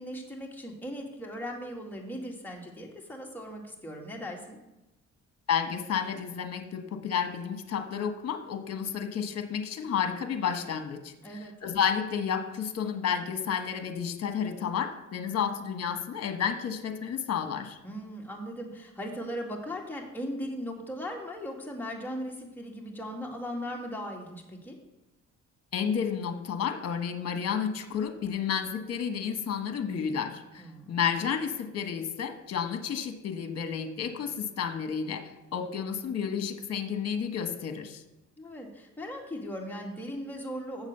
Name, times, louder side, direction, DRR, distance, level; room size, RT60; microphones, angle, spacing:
voice 1, 0.0-4.6 11.2-11.5 17.8-24.8 30.6-30.9 38.4-40.9, equal, 5° left, -1 dB, 2.0 m, -38 dB
voice 2, 5.5-17.8 25.7-35.2 35.5-38.0, left 7 dB, 55° left, 7 dB, 1.3 m, -31 dB
7.6 x 7.2 x 6.7 m, 0.96 s
cardioid pair, 90°, 30 cm